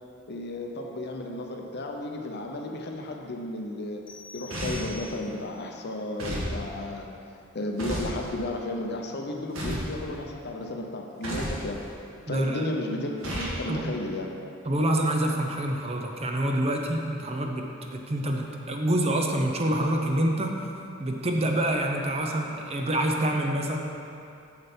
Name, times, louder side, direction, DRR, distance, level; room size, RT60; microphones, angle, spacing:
voice 1, 0.3-4.0 4.3-11.8 12.3-14.3, left 1 dB, 50° left, 2 dB, 0.7 m, -33 dB
sound 1, 4.1-5.6, left 2 dB, 25° left, 1.0 m, -46 dB
sound 2, 4.5-5.0 6.2-6.5 7.8-8.2 9.5-9.9 11.2-11.6 13.2-13.6, equal, 70° right, 1.7 m, -32 dB
voice 2, 12.3-12.7 13.7-13.9 14.7-17.6 17.9-20.5 21.0-23.8, right 1 dB, 30° right, 2 dB, 0.6 m, -26 dB
7.0 x 6.7 x 4.3 m, 2.6 s
head